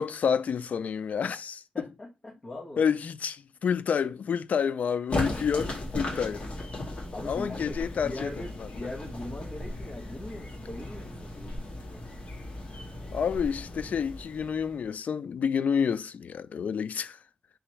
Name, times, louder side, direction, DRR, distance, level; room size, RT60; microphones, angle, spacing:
voice 1, 0.0-1.6 2.8-6.5 7.3-8.3 13.1-17.2, left 7 dB, 80° left, 0.3 m, -29 dB
voice 2, 1.7-2.9 7.1-12.1, left 1 dB, 30° left, 1.1 m, -41 dB
sound 1, 5.1-14.9, left 1 dB, 50° left, 1.8 m, -37 dB
3.6 x 3.0 x 4.3 m
wide cardioid pair, 175°, 3 cm